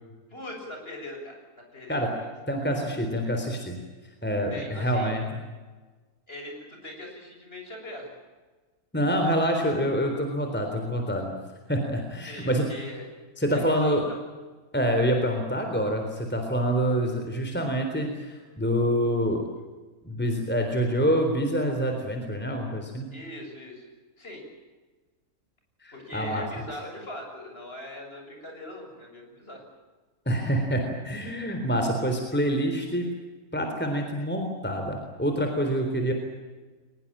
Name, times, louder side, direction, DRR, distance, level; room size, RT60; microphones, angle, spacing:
voice 1, 0.3-1.4 1.7-2.3 4.5-5.1 6.3-8.1 12.3-13.0 13.5-14.2 23.1-23.9 24.2-24.4 25.9-29.6, left 1 dB, 40° left, 2 dB, 7.4 m, -41 dB
voice 2, 2.5-3.8 4.2-5.2 8.9-11.3 11.7-12.7 13.4-14.1 14.7-19.4 20.0-23.1 25.8-26.4 30.3-33.1 33.5-36.1, equal, 5° left, 3 dB, 3.7 m, -26 dB
23.0 x 21.5 x 8.8 m, 1.3 s
omnidirectional pair, 1.5 m